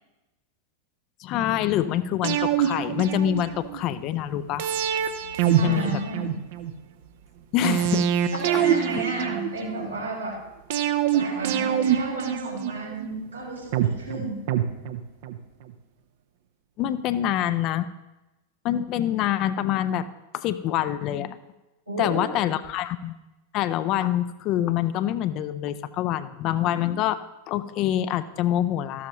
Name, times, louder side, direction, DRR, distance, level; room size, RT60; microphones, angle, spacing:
voice 1, 1.2-4.7 5.4-6.0 7.5-8.1 8.5-8.7 16.8-17.9 18.6-20.1 20.3-21.4 22.0-23.1 23.5-29.1, left 11 dB, 40° left, 13 dB, 0.5 m, -26 dB
sound 1, 2.2-3.8 4.6-6.7 7.6-9.9 10.7-13.1 13.7-15.4 15.7-15.8, right 9 dB, 50° right, 0.7 m, -25 dB
voice 2, 5.6-6.4 8.3-10.4 11.1-14.4 21.9-22.3, right 2 dB, 85° right, -6 dB, 4.5 m, -32 dB
13.5 x 12.0 x 3.0 m, 1.0 s
figure-of-eight pair, 90°, 0 cm